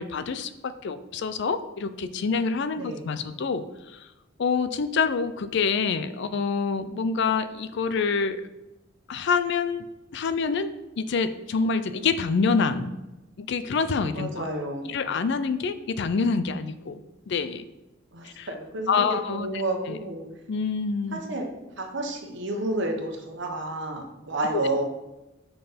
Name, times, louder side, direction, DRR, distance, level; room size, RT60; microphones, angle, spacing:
voice 1, 0.0-3.6 4.4-8.4 9.1-9.8 10.1-12.9 13.4-14.3 14.9-17.7 18.2-18.5 18.9-19.5 19.9-20.0 20.5-21.2, left 5 dB, 60° left, 12 dB, 0.4 m, -26 dB
voice 2, 2.8-3.2 14.1-15.0 18.1-20.2 21.1-21.5 21.8-24.8, right 2 dB, 65° right, 3 dB, 1.1 m, -31 dB
5.6 x 4.5 x 5.0 m, 1.0 s
head